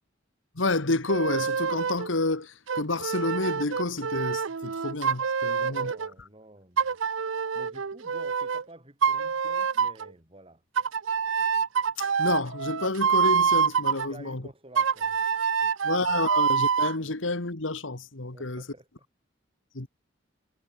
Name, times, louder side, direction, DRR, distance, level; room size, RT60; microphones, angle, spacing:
voice 1, 0.6-5.9 12.0-14.4 15.8-18.6 19.7-19.9, left 2 dB, 85° left, 1.9 m, -29 dB
sound 1, 1.1-2.1 2.7-6.1 6.8-8.6 9.0-10.1 10.8-14.1 14.8-17.0, right 6 dB, 85° right, 0.7 m, -26 dB
voice 2, 5.5-7.0 7.5-10.6 14.0-15.2 15.6-15.7 18.3-19.1, right 1 dB, 30° right, 6.5 m, -50 dB
head